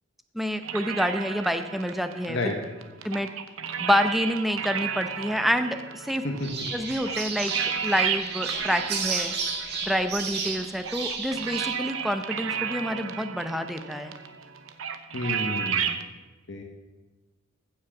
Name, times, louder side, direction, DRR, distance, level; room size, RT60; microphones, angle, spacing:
voice 1, 0.3-2.4 3.0-3.3 3.8-6.2 6.7-9.3 9.8-14.1, equal, ahead, 8 dB, 0.6 m, -28 dB
sound 1, 0.6-16.0, right 7 dB, 70° right, 0.8 m, -33 dB
sound 2, 6.4-11.7, right 5 dB, 55° right, 2.0 m, -32 dB
voice 2, 15.1-15.9 16.5-16.6, left 2 dB, 60° left, 2 dB, 1.1 m, -30 dB
15.0 x 6.2 x 5.9 m, 1.2 s
head